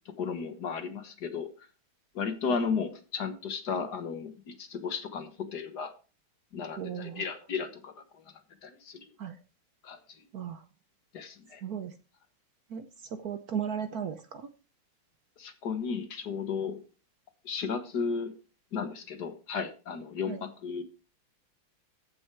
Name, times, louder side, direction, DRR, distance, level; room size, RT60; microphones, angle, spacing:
voice 1, 0.2-1.5 2.1-5.9 6.5-8.2 8.6-9.0 9.8-10.0 11.1-11.6 15.4-16.8 17.4-18.3 18.7-20.8, left 5 dB, 55° left, 1.7 m, -34 dB
voice 2, 6.8-7.3 9.2-9.4 10.3-10.6 11.6-11.9 12.7-14.5 20.3-20.4, right 8 dB, 60° right, 1.1 m, -36 dB
14.5 x 6.3 x 4.6 m
omnidirectional pair, 2.2 m